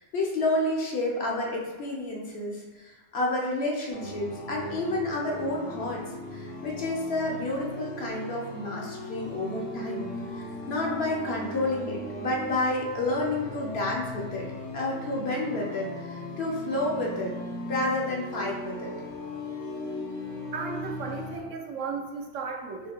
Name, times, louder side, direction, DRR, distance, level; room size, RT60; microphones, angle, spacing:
voice 1, 0.0-6.0 6.3-14.4 14.7-17.3 17.7-18.9, left 2 dB, 60° left, -2 dB, 1.0 m, -30 dB
sound 1, 3.9-21.4, left 1 dB, 75° left, 1.3 m, -38 dB
voice 2, 20.5-22.9, right 5 dB, 80° right, 3 dB, 0.9 m, -35 dB
3.6 x 2.8 x 4.1 m, 1.3 s
omnidirectional pair, 1.3 m